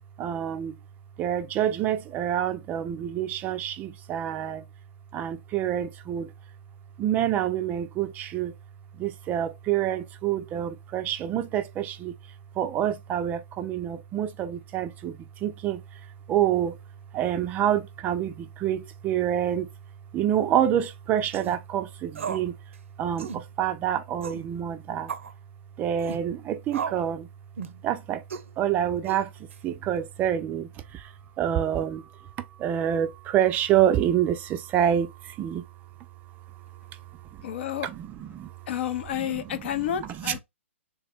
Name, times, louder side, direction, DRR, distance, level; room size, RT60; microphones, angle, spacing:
voice 1, 0.2-0.7 1.2-4.6 5.1-6.3 7.0-8.5 9.0-12.1 12.6-15.8 16.3-16.8 17.1-19.7 20.1-22.5 23.0-25.1 25.8-27.3 27.8-28.2 28.6-29.3 29.6-32.1 32.4-35.6 37.3-37.4 37.8-38.5 39.1-39.4 39.7-40.4, right 10 dB, 25° right, 0.4 m, -27 dB
sound 1, 21.3-21.6 22.1-22.5 22.7-22.8 23.2-23.4 24.2-24.5 25.1-25.3 26.0-26.2 26.7-27.1 27.6-27.8 28.3-28.5 29.1-29.5, right 7 dB, 75° right, 0.5 m, -35 dB
voice 2, 37.4-37.9 38.7-40.4, left 10 dB, 55° left, 0.5 m, -30 dB
3.4 x 2.1 x 4.2 m
hypercardioid pair, 130°, 7 cm